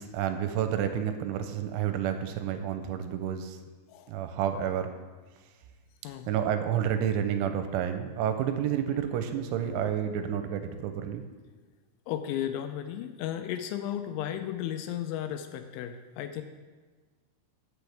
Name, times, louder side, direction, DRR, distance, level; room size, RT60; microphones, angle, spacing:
voice 1, 0.0-3.6 4.1-4.9 6.3-11.2, right 9 dB, 85° right, 8 dB, 3.0 m, -30 dB
voice 2, 12.1-16.4, left 10 dB, 85° left, 8 dB, 2.8 m, -34 dB
15.0 x 6.9 x 3.4 m, 1.4 s
omnidirectional pair, 5.6 m